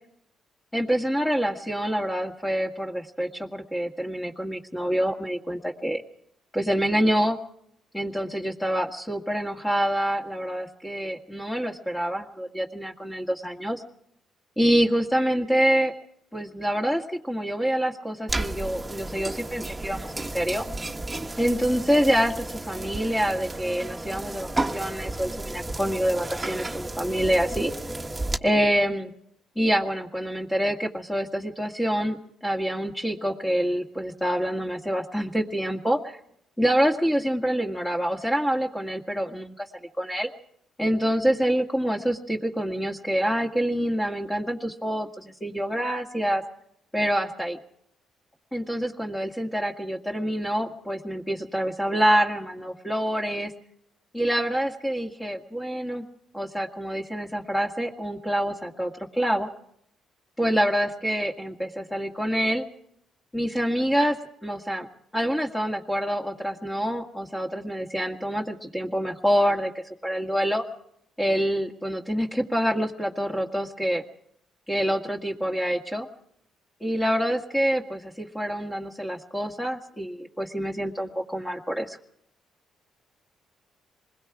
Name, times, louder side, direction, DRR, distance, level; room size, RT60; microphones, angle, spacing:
voice 1, 0.7-6.0 6.5-7.4 7.9-13.8 14.6-15.9 16.3-20.7 21.4-27.7 28.4-29.1 29.6-32.2 32.4-36.2 36.6-39.7 40.0-40.3 40.8-46.4 46.9-47.6 48.5-53.5 54.1-56.0 56.3-59.5 60.4-62.7 63.3-64.9 65.1-70.6 71.2-74.0 74.7-76.1 76.8-82.0, equal, 10° left, 1 dB, 2.0 m, -26 dB
sound 1, 18.3-28.4, right 2 dB, 15° right, 1.4 m, -33 dB
27.0 x 21.0 x 4.9 m, 0.73 s
cardioid pair, 90°, 0 cm